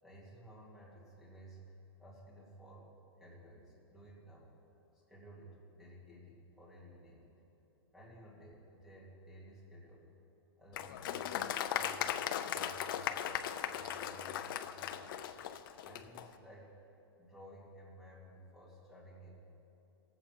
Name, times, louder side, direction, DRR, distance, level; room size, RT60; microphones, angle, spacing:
voice 1, 0.0-1.6 2.0-4.6 4.9-7.4 7.9-10.1 10.6-12.1 12.4-15.3 15.8-16.8 17.2-19.4, right 1 dB, ahead, -7 dB, 2.4 m, -55 dB
Applause, 10.7-16.3, left 10 dB, 55° left, 0.5 m, -38 dB
18.5 x 7.8 x 4.5 m, 2.8 s
supercardioid pair, 155°, 14 cm